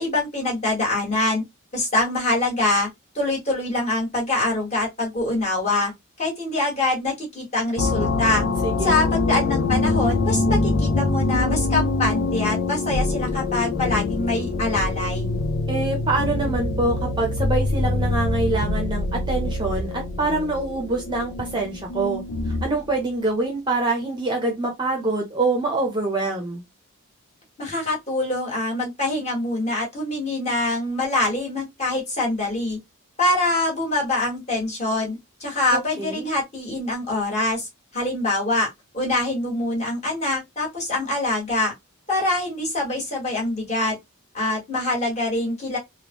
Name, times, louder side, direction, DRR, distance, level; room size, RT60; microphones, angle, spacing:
voice 1, 0.0-1.4 1.7-2.9 3.1-5.9 6.2-8.4 8.8-15.3 27.6-32.8 33.2-38.7 38.9-41.7 42.1-43.9 44.3-45.8, left 2 dB, 30° left, 1.6 m, -24 dB
sound 1, 7.8-22.8, left 2 dB, 80° left, 0.5 m, -24 dB
voice 2, 8.6-9.0 15.7-22.2 22.6-26.6 35.7-36.3, right 2 dB, 20° right, 0.6 m, -25 dB
3.5 x 2.2 x 2.9 m
head